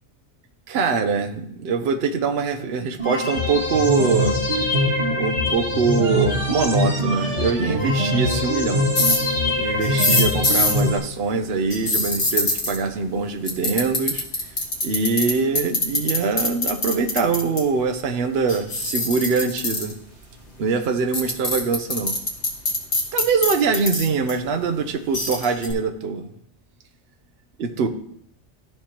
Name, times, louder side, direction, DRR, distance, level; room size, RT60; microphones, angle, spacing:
voice 1, 0.7-4.4 5.1-8.9 9.5-14.3 14.8-19.9 20.6-22.1 23.1-26.3 27.6-27.9, right 4 dB, 65° right, 7 dB, 0.9 m, -23 dB
sound 1, 3.0-11.0, left 1 dB, 85° right, 1.7 m, -23 dB
sound 2, 9.0-9.2 9.8-10.8 11.7-12.8 13.5-15.3 15.6-17.6 18.5-19.9 20.8-20.9 21.1-24.3 25.1-25.7, left 2 dB, 55° left, 1.8 m, -22 dB
13.0 x 4.5 x 2.9 m, 0.70 s
omnidirectional pair, 1.2 m